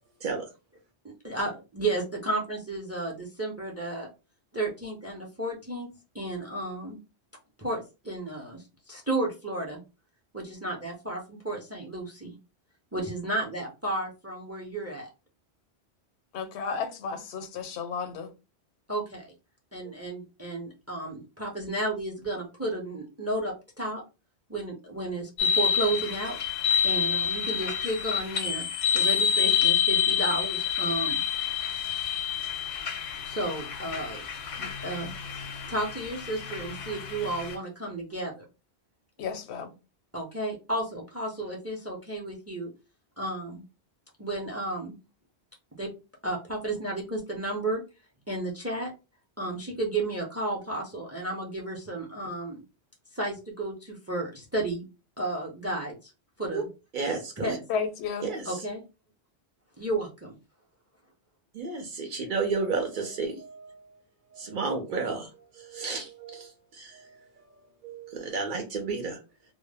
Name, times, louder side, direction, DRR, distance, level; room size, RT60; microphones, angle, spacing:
voice 1, 1.2-4.1 4.5-5.9 6.1-7.0 7.6-9.8 10.3-12.4 12.9-15.1 18.9-19.3 19.7-24.0 24.5-26.4 26.8-28.6 28.9-31.2 33.2-34.2 34.6-35.1 35.7-38.4 40.1-42.7 43.2-43.6 44.2-45.0 45.8-45.9 46.2-47.8 48.3-48.9 49.4-52.6 53.1-54.8 55.2-56.1 56.4-56.7 57.4-57.6 58.5-58.8 59.8-60.3, right 2 dB, 20° right, 0.4 m, -32 dB
voice 2, 16.3-18.3 39.2-39.7 57.7-58.3, left 6 dB, 85° left, 0.9 m, -33 dB
sound 1, 25.4-37.6, left 8 dB, 55° left, 0.5 m, -28 dB
voice 3, 56.9-57.6 58.2-58.7 61.5-64.0 64.3-67.2 67.8-69.2, right 4 dB, 60° right, 0.6 m, -32 dB
2.1 x 2.0 x 3.3 m
omnidirectional pair, 1.1 m